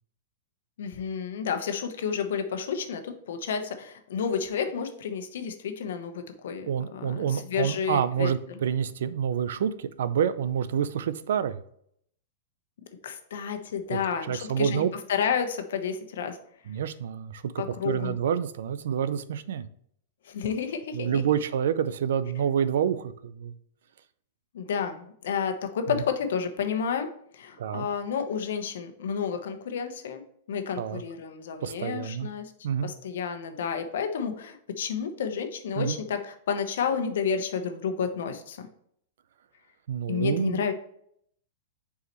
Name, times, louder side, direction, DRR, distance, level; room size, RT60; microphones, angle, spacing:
voice 1, 0.8-8.6 13.0-14.8 15.1-16.4 17.6-18.2 20.2-21.2 24.5-30.2 30.5-32.5 32.8-38.6 40.1-40.7, left 7 dB, 75° left, 7 dB, 1.0 m, -31 dB
voice 2, 6.7-11.6 13.9-14.0 14.3-14.9 16.7-17.5 17.8-19.7 20.9-23.5 25.9-26.0 27.6-27.9 30.8-31.0 31.6-32.3 32.6-32.9 35.8-36.0 39.9-40.7, right 8 dB, 75° right, 14 dB, 0.5 m, -28 dB
6.8 x 4.8 x 3.0 m, 0.67 s
supercardioid pair, 155°, 0 cm